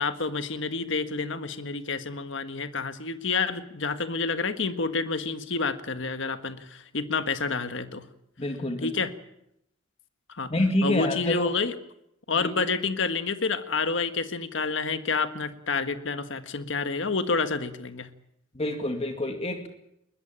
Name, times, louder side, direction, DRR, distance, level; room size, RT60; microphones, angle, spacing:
voice 1, 0.0-8.0 8.8-9.1 10.4-10.5 10.8-11.8 12.3-18.1, left 4 dB, 65° left, 9 dB, 1.6 m, -29 dB
voice 2, 8.4-8.9 10.5-11.5 12.3-12.5 18.5-19.7, left 1 dB, 30° left, 5 dB, 2.2 m, -27 dB
21.0 x 20.5 x 8.9 m, 0.83 s
head